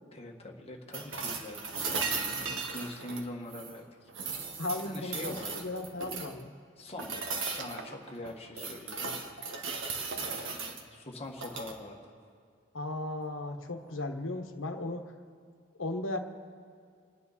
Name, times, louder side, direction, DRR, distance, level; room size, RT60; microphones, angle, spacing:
voice 1, 0.1-4.5 4.8-5.7 6.8-9.1 9.6-12.1, left 1 dB, 30° left, 1 dB, 1.7 m, -44 dB
sound 1, 0.9-3.8 4.1-6.4 7.0-7.8 8.2-10.8 11.3-11.8 13.8-13.9, right 4 dB, 85° right, 1.5 m, -37 dB
sound 2, 3.0-3.3 4.0-5.9 7.5-8.6 9.1-9.2 9.6-9.7 10.1-10.7, right 4 dB, 65° right, 0.7 m, -48 dB
voice 2, 4.6-6.5 12.7-15.1 15.8-16.2, left 2 dB, 80° left, 5 dB, 1.2 m, -36 dB
29.0 x 9.8 x 4.2 m, 2.2 s
head